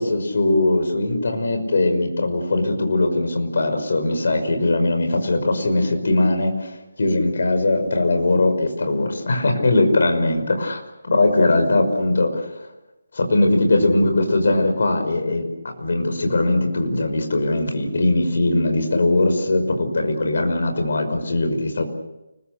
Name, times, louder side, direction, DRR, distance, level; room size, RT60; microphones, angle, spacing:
voice 1, 0.0-12.7 13.1-15.5 15.8-21.8, left 2 dB, 55° left, 5 dB, 5.7 m, -20 dB
29.5 x 21.5 x 6.8 m, 0.98 s
hypercardioid pair, 175°, 0 cm